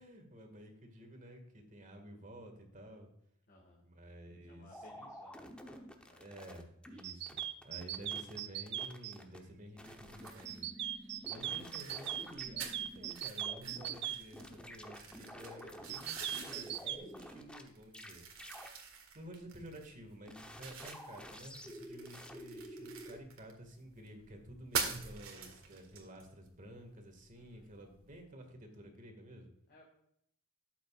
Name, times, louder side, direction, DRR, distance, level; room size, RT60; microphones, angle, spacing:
voice 1, 0.0-3.1 3.8-5.1 6.2-18.5 19.1-29.5, equal, 40° right, 4 dB, 2.0 m, -52 dB
voice 2, 3.5-3.8 4.5-6.6 7.0-7.1 11.1-11.5 27.3-27.7 29.7-29.8, left 1 dB, 50° left, -2 dB, 2.0 m, -63 dB
sound 1, 4.7-7.0 7.3-8.4 8.7-9.4 9.8-14.1 14.3-17.6 17.9-18.1 18.4-18.7 20.2-23.2, equal, 5° left, 0.9 m, -50 dB
sound 2, 7.0-9.1 10.4-14.2 15.9-17.0, right 11 dB, 55° right, 0.5 m, -39 dB
sound 3, 9.8-28.2, right 6 dB, 75° right, 1.9 m, -46 dB
12.5 x 8.3 x 2.5 m, 0.73 s
head